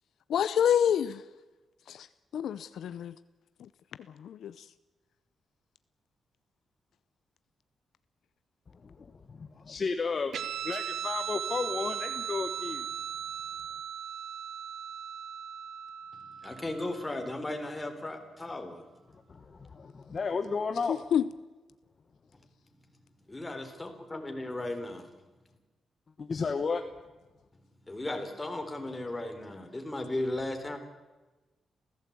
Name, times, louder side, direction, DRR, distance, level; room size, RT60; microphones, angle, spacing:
voice 1, 0.3-1.2 1.9-2.1 2.3-3.1 4.2-4.6 20.9-21.2, left 9 dB, 80° left, 14 dB, 0.7 m, -27 dB
voice 2, 8.8-12.9 19.3-21.0 26.2-26.8, left 4 dB, 40° left, 8 dB, 1.2 m, -33 dB
Guitar, 10.3-17.2, right 8 dB, 75° right, 1.8 m, -38 dB
voice 3, 16.4-18.9 23.3-25.0 27.9-30.8, left 1 dB, 15° left, 5 dB, 3.7 m, -36 dB
28.0 x 16.0 x 8.6 m, 1.2 s
wide cardioid pair, 130°, 0 cm